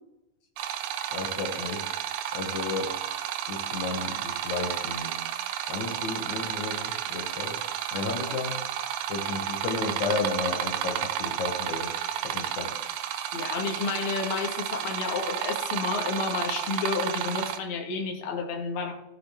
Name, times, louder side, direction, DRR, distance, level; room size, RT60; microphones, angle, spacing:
sound 1, 0.6-17.6, right 10 dB, 85° right, 2.2 m, -32 dB
voice 1, 1.1-1.9 2.3-3.0 3.5-5.2 5.7-7.6 7.9-8.6 9.1-11.9 12.2-12.8, left 4 dB, 70° left, 3 dB, 2.4 m, -33 dB
voice 2, 13.3-18.9, left 4 dB, 50° left, 2 dB, 2.0 m, -31 dB
16.5 x 5.9 x 3.4 m, 0.88 s
omnidirectional pair, 3.6 m